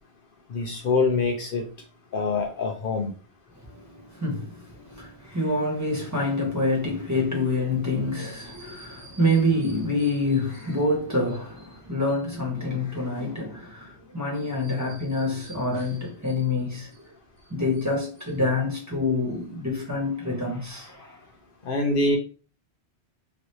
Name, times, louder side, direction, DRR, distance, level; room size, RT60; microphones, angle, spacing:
voice 1, 0.5-1.7 2.1-3.1 21.6-22.2, left 3 dB, 60° left, 0.7 m, -24 dB
voice 2, 3.6-17.1 17.5-21.2, left 2 dB, 15° right, 1.1 m, -27 dB
3.1 x 2.6 x 2.9 m
omnidirectional pair, 1.1 m